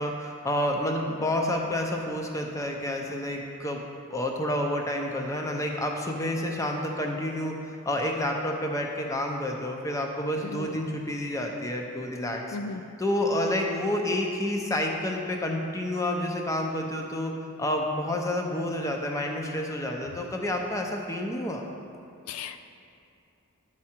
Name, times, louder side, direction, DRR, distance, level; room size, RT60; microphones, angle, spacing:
voice 1, 0.0-3.8 4.1-12.6 13.0-17.3 17.6-21.6, left 1 dB, 15° left, 1 dB, 0.6 m, -29 dB
voice 2, 10.4-10.8 12.5-12.8 22.3-22.6, left 4 dB, 85° left, 10 dB, 0.3 m, -35 dB
11.0 x 4.8 x 4.4 m, 2.5 s
head